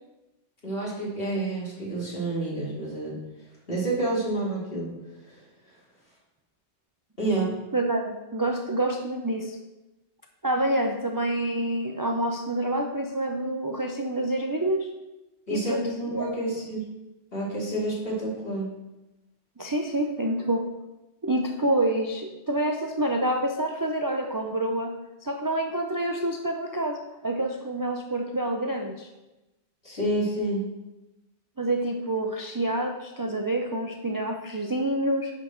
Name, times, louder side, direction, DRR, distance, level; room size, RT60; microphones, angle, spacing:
voice 1, 0.6-3.2 3.7-4.9 5.3-5.4 7.2-7.5 15.5-16.8 17.3-18.7 29.8-30.7, right 2 dB, 50° left, -6 dB, 2.8 m, -29 dB
voice 2, 7.7-9.6 10.4-14.9 15.5-15.8 16.1-16.3 19.6-20.7 21.2-24.9 25.2-29.1 31.6-35.3, right 1 dB, 35° right, 3 dB, 0.3 m, -27 dB
10.5 x 4.4 x 4.4 m, 1.0 s
omnidirectional pair, 1.2 m